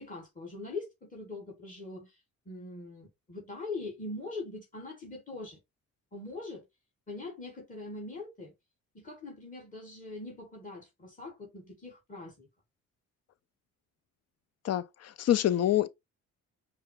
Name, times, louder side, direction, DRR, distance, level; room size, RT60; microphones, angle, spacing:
voice 1, 0.0-2.2 2.4-5.6 6.1-6.6 7.1-8.5 8.9-12.5, left 3 dB, 25° left, 2.8 m, -42 dB
voice 2, 14.6-15.9, left 12 dB, 55° left, 0.6 m, -26 dB
5.5 x 2.4 x 3.3 m
cardioid pair, 90°, 30 cm